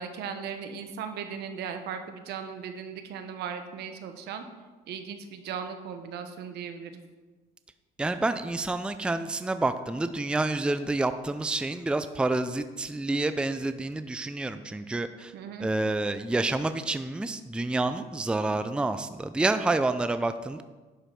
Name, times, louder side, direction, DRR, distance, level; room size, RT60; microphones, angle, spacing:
voice 1, 0.0-4.4 4.9-7.0 15.3-15.7, right 7 dB, 75° right, 7 dB, 1.1 m, -37 dB
voice 2, 8.0-15.3 15.6-20.6, right 2 dB, 5° right, 10 dB, 0.4 m, -28 dB
11.0 x 5.1 x 5.8 m, 1.3 s
cardioid pair, 110°, 17 cm